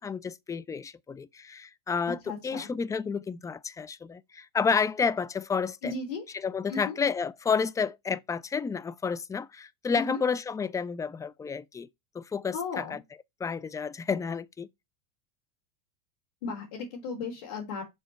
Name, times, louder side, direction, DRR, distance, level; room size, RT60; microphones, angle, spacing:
voice 1, 0.0-2.2 2.4-5.9 6.3-11.9 12.1-13.0 13.4-14.7, left 5 dB, 15° left, 0.6 m, -30 dB
voice 2, 2.3-2.7 5.8-6.2 6.7-7.0 9.9-10.2 12.5-13.0 16.4-17.8, left 4 dB, 70° left, 3.8 m, -35 dB
7.1 x 4.4 x 4.2 m
hypercardioid pair, 105°, 20 cm